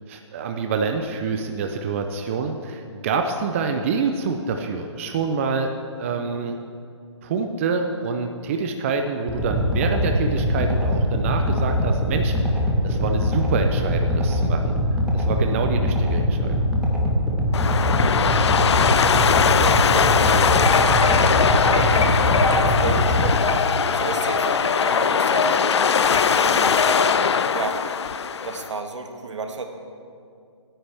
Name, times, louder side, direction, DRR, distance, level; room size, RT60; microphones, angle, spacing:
voice 1, 0.1-6.6 7.2-12.5 12.8-14.7 15.1-16.5, right 5 dB, 25° right, 5 dB, 0.5 m, -26 dB
sound 1, 9.3-23.3, equal, 5° right, 1.1 m, -22 dB
sound 2, 17.5-28.7, left 6 dB, 60° left, 0.5 m, -20 dB
voice 2, 19.5-26.8 27.5-27.8 28.4-29.6, right 4 dB, 75° right, 5 dB, 1.4 m, -33 dB
sound 3, 20.6-27.2, left 3 dB, 90° left, 1.5 m, -27 dB
17.0 x 9.9 x 3.4 m, 2.4 s
hypercardioid pair, 155°, 16 cm